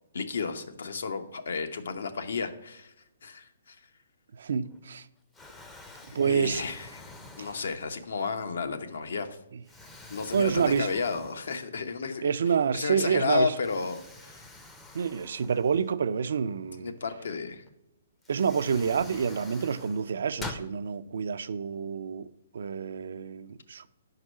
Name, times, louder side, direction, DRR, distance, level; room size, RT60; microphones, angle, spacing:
voice 1, 0.1-2.9 3.2-3.8 6.1-7.0 7.4-9.3 10.1-12.3 12.7-14.4 16.8-17.6, left 4 dB, 75° left, 0.9 m, -32 dB
voice 2, 4.3-5.1 6.1-6.6 7.4-7.5 9.5-9.6 10.3-10.9 12.2-13.5 14.9-17.0 18.3-22.3 22.5-23.9, right 6 dB, 70° right, 0.4 m, -28 dB
Explosion, 4.6-5.0 5.3-8.2 8.8-8.9 9.7-11.9 12.3-12.4 13.6-16.2 17.7-17.8 18.2-20.7, left 2 dB, 10° left, 0.5 m, -46 dB
5.4 x 4.8 x 6.3 m
hypercardioid pair, 160°, 0 cm